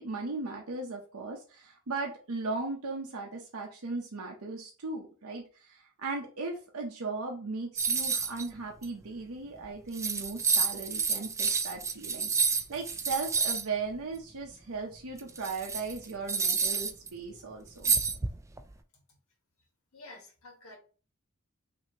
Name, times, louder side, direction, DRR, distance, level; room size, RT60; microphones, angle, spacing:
voice 1, 0.0-17.9, right 3 dB, 85° right, 0 dB, 0.8 m, -37 dB
sound 1, 7.8-8.5 8.8-8.9 9.6-9.7 9.9-13.6 15.2-17.1 17.8-18.6, right 5 dB, 15° right, 0.3 m, -29 dB
voice 2, 19.9-20.8, left 2 dB, 70° left, 2 dB, 1.6 m, -49 dB
5.9 x 2.8 x 2.9 m, 0.37 s
head